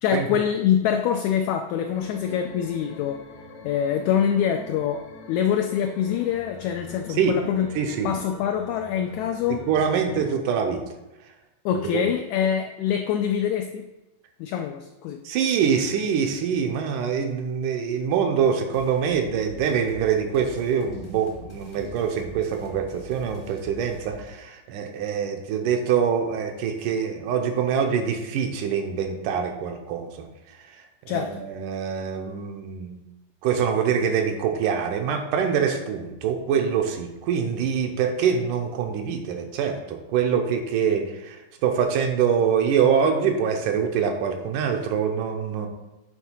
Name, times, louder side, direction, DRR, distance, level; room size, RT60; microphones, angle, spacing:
voice 1, 0.0-3.2 3.6-7.7 8.0-9.6 11.6-13.9 14.4-15.2 31.1-31.4, left 9 dB, 80° left, 5 dB, 1.7 m, -25 dB
sound 1, 1.9-10.4, left 4 dB, 65° left, 1.9 m, -44 dB
voice 2, 7.8-8.1 9.5-10.8 11.9-12.0 15.3-30.3 30.6-33.1 33.4-45.7, right 7 dB, 85° right, 4 dB, 2.3 m, -24 dB
sound 2, 18.7-24.3, left 1 dB, 35° left, 0.8 m, -45 dB
9.1 x 3.7 x 5.6 m, 0.98 s
omnidirectional pair, 3.7 m